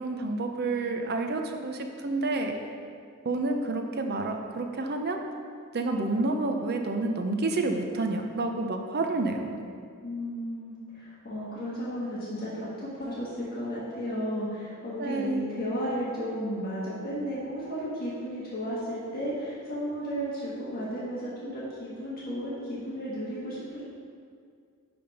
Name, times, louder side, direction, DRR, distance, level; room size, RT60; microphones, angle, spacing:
voice 1, 0.0-1.8 2.0-2.6 3.2-5.2 5.7-9.6 15.0-15.5, right 2 dB, 50° right, 4 dB, 0.7 m, -29 dB
voice 2, 10.0-23.8, equal, 45° left, -8 dB, 1.6 m, -34 dB
10.0 x 3.5 x 5.3 m, 2.2 s
head